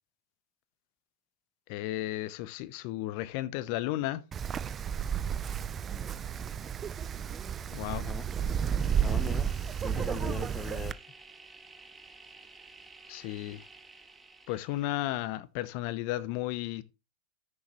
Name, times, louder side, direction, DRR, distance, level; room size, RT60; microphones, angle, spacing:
voice 1, 1.7-4.2 7.7-8.1 13.1-13.7 14.5-16.8, left 15 dB, 55° left, 0.8 m, -34 dB
Wind, 4.3-10.9, right 8 dB, 30° right, 0.6 m, -32 dB
voice 2, 7.9-8.3 9.0-9.5 9.8-11.0, left 5 dB, 20° left, 0.8 m, -40 dB
sound 1, 8.8-14.9, right 3 dB, 15° right, 1.6 m, -52 dB
14.5 x 6.6 x 3.0 m
hypercardioid pair, 100°, 0 cm